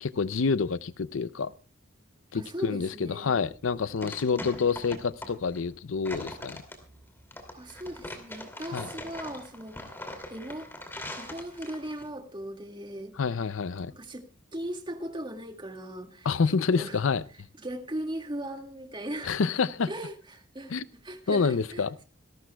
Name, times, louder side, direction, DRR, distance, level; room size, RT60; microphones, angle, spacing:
voice 1, 0.0-1.5 2.3-6.6 8.7-8.9 13.2-13.9 16.2-17.2 19.2-19.9 20.7-20.8 21.3-21.9, left 5 dB, 75° left, 16 dB, 0.6 m, -27 dB
voice 2, 2.3-3.3 4.3-4.6 7.5-9.9 10.3-10.7 11.1-13.1 13.9-16.3 16.7-17.0 17.6-19.4 19.9-20.7 21.0-21.8, right 1 dB, 25° right, 4 dB, 2.0 m, -38 dB
sound 1, 3.5-12.1, left 1 dB, 10° left, 2.6 m, -42 dB
26.5 x 12.5 x 2.3 m, 0.34 s
head